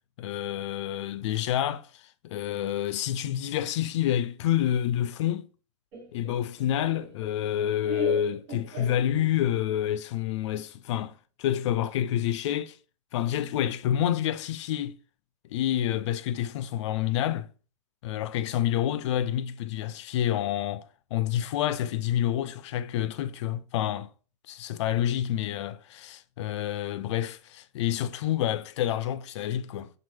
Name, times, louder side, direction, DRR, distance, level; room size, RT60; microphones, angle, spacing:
voice 1, 0.2-5.5 6.1-12.8 13.1-15.0 15.5-17.5 18.0-20.8 21.1-24.1 24.5-29.9, left 11 dB, 60° left, 0.5 m, -28 dB
Laughter, 5.9-9.6, right 1 dB, 40° right, 1.1 m, -39 dB
6.2 x 2.5 x 3.4 m
supercardioid pair, 150°, 17 cm